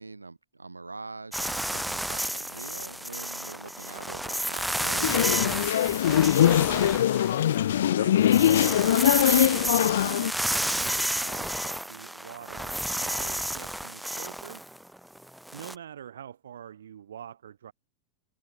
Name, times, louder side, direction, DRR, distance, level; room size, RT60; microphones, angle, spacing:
voice 1, 0.0-6.2, right 3 dB, 80° right, 3.8 m, -43 dB
sound 1, 1.3-7.7 8.1-15.7, right 1 dB, ahead, 0.7 m, -31 dB
Singing / Musical instrument, 2.1-5.0, left 2 dB, 85° left, 7.3 m, -56 dB
sound 2, 5.0-10.3, left 11 dB, 60° left, 0.3 m, -22 dB
voice 2, 7.9-8.7 9.2-14.6 15.5-17.7, right 9 dB, 65° right, 1.8 m, -45 dB
figure-of-eight pair, 90°, 0 cm